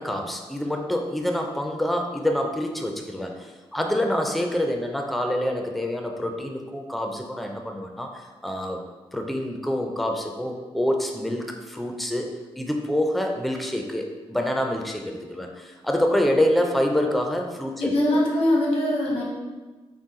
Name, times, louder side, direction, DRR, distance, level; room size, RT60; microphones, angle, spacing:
voice 1, 0.0-8.8 9.1-17.9, left 1 dB, ahead, 2 dB, 0.3 m, -26 dB
voice 2, 17.8-19.2, left 1 dB, 80° left, -3 dB, 1.1 m, -22 dB
3.9 x 2.2 x 3.7 m, 1.3 s
wide cardioid pair, 110°, 10 cm